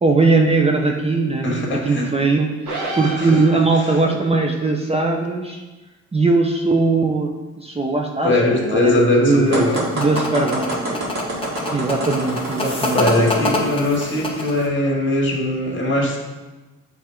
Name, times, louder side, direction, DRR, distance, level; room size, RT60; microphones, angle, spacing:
voice 1, 0.0-5.6 6.1-11.0 11.7-13.5, right 3 dB, 20° right, 1 dB, 0.6 m, -20 dB
voice 2, 1.4-2.1 2.8-2.9 3.2-3.4 4.0-4.1 8.2-9.8 12.9-16.2, left 2 dB, 40° left, -1 dB, 1.8 m, -20 dB
sound 1, 2.7-4.0, right 3 dB, 85° right, 1.7 m, -29 dB
sound 2, 9.5-14.7, left 2 dB, 20° left, 1.1 m, -26 dB
sound 3, 9.5-13.7, right 1 dB, 60° right, 2.1 m, -27 dB
7.2 x 3.5 x 4.4 m, 1.2 s
cardioid pair, 90°, 30 cm